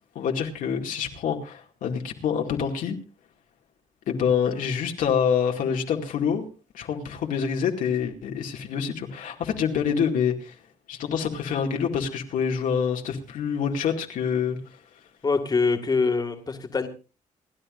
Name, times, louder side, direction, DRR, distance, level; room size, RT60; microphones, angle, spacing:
voice 1, 0.1-3.0 4.1-6.5 6.7-10.6 10.9-14.8, left 7 dB, 80° left, 2 dB, 2.3 m, -26 dB
voice 2, 15.2-16.9, left 4 dB, 30° left, 5 dB, 2.0 m, -24 dB
28.0 x 11.5 x 2.6 m, 0.32 s
cardioid pair, 110°, 14 cm